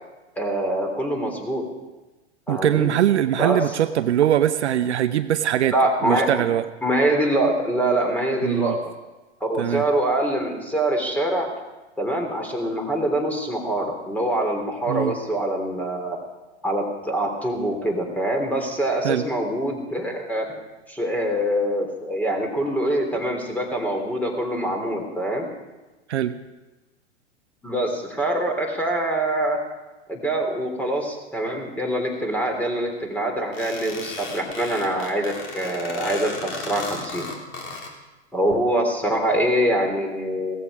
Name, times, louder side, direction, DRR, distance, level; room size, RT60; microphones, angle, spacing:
voice 1, 0.4-1.6 2.5-2.9 3.4-3.6 5.7-6.3 6.8-8.8 9.4-11.5 12.0-16.2 16.6-20.4 20.9-25.5 27.6-29.6 30.1-37.2 38.3-40.6, right 1 dB, 5° left, 2 dB, 3.2 m, -24 dB
voice 2, 2.5-5.7 6.0-6.7 8.4-8.8 9.6-9.9 14.9-15.1 19.0-19.2 26.1-26.3, right 11 dB, 70° right, 10 dB, 0.9 m, -21 dB
sound 1, 33.5-37.9, left 3 dB, 35° left, 3.1 m, -35 dB
17.0 x 14.0 x 4.9 m, 1.1 s
hypercardioid pair, 105°, 35 cm